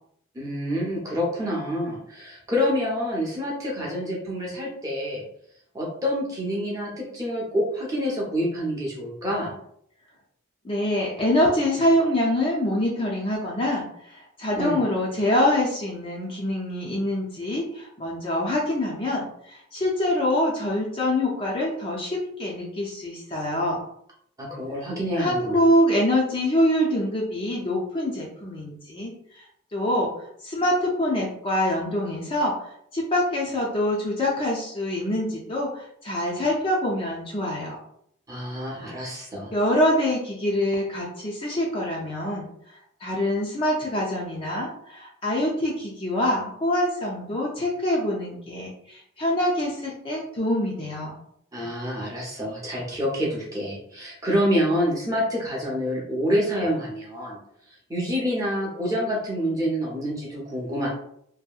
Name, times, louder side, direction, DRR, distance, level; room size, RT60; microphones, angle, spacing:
voice 1, 0.3-5.2 5.7-9.5 14.5-14.8 24.4-25.6 38.3-39.5 51.5-57.4 57.9-60.9, equal, 15° right, -3 dB, 0.6 m, -27 dB
voice 2, 10.6-23.8 25.2-29.4 29.7-32.5 32.9-37.8 39.5-42.5 43.0-51.2, left 1 dB, 25° left, -3 dB, 0.4 m, -25 dB
2.7 x 2.6 x 2.3 m, 0.70 s
head